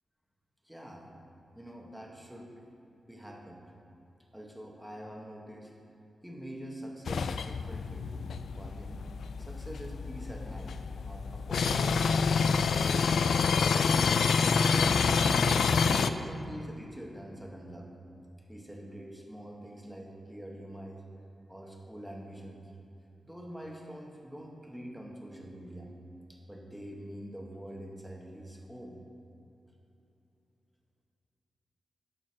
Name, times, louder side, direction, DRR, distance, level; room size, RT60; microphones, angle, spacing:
voice 1, 0.6-1.1 1.5-2.5 3.1-3.6 4.3-5.7 6.2-9.0 9.4-12.3 12.7-15.0 15.6-17.9 18.5-21.0 21.5-22.7 23.2-25.9 26.3-29.0, right 1 dB, 5° right, -1 dB, 1.4 m, -45 dB
sound 1, 7.1-16.1, left 5 dB, 80° left, 0.3 m, -27 dB
12.5 x 4.5 x 6.2 m, 2.8 s
wide cardioid pair, 110°, 0 cm